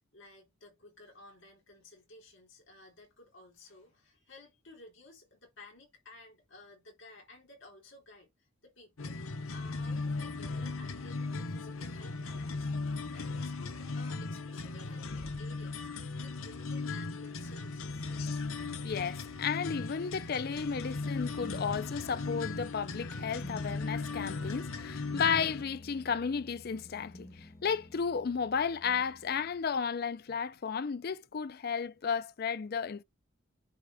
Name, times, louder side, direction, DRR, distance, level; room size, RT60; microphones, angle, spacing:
voice 1, 0.1-9.2 9.5-12.7 13.1-18.1, left 2 dB, 60° left, 3.5 m, -55 dB
sound 1, 9.0-25.6, left 3 dB, 75° left, 1.0 m, -37 dB
voice 2, 18.8-33.0, left 6 dB, 45° left, 0.4 m, -33 dB
sound 2, 21.2-30.0, left 1 dB, 15° left, 1.0 m, -51 dB
10.0 x 3.6 x 5.5 m
head